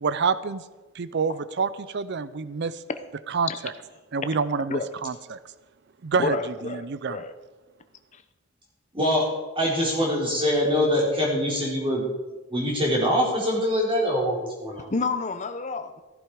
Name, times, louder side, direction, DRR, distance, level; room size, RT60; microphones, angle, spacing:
voice 1, 0.0-0.6 0.9-2.8 3.3-3.7 4.1-5.4 6.0-6.4 6.6-7.2, right 5 dB, 55° right, 15 dB, 0.5 m, -27 dB
voice 2, 6.2-7.3 14.9-16.0, left 4 dB, 35° left, 9 dB, 0.9 m, -29 dB
voice 3, 8.9-9.3 9.6-12.0 12.5-14.9, equal, 25° right, -3 dB, 4.1 m, -24 dB
15.5 x 11.0 x 4.9 m, 1.2 s
head